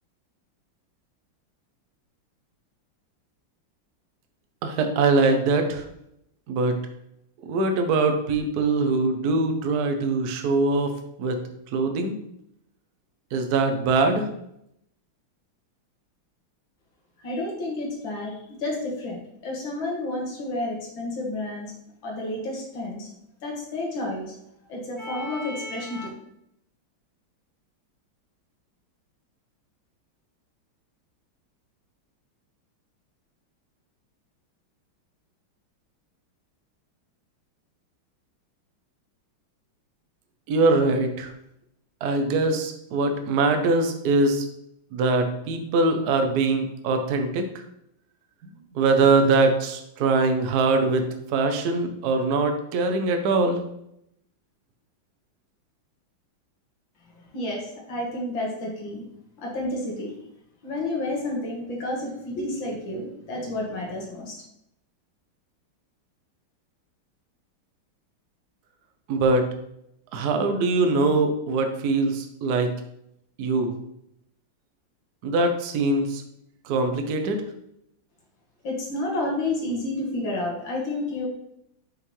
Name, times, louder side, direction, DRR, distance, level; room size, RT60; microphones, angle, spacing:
voice 1, 4.6-5.8 6.5-6.8 7.4-10.9 11.2-11.4 11.7-12.2 13.3-14.3 40.5-41.3 42.0-44.5 44.9-47.4 48.7-53.6 69.1-69.5 70.1-72.7 73.4-73.7 75.2-76.2 76.6-77.4, right 3 dB, 60° right, 6 dB, 1.1 m, -22 dB
voice 2, 17.2-21.7 22.0-23.1 23.4-24.3 24.7-26.1 57.1-59.0 59.4-60.1 60.6-64.4 78.6-81.3, left 2 dB, 65° left, -1 dB, 2.1 m, -30 dB
5.6 x 5.6 x 3.1 m, 0.77 s
omnidirectional pair, 2.3 m